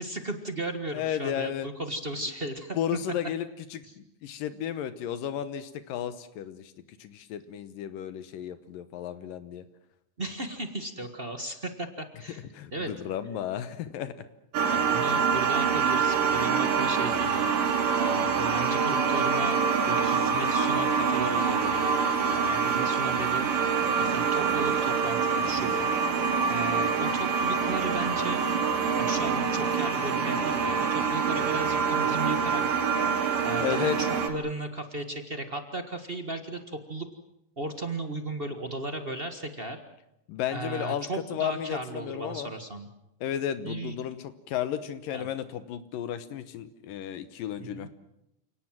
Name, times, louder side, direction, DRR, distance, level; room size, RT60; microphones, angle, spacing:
voice 1, 0.0-3.0 3.8-4.0 10.2-12.9 14.7-17.5 18.0-22.0 22.2-23.5 24.0-25.9 26.5-28.4 29.0-32.6 33.4-37.1 37.6-39.8 40.5-42.9 43.6-44.0 45.1-45.3 47.6-47.9, right 2 dB, 35° right, 7 dB, 0.8 m, -36 dB
voice 2, 0.9-1.7 2.8-6.7 7.0-9.6 12.5-14.1 33.6-34.0 40.3-42.5 43.2-47.9, left 10 dB, 80° left, 12 dB, 2.8 m, -33 dB
sound 1, 14.5-34.3, right 6 dB, 75° right, 4.0 m, -25 dB
29.0 x 18.5 x 7.6 m, 0.82 s
omnidirectional pair, 3.9 m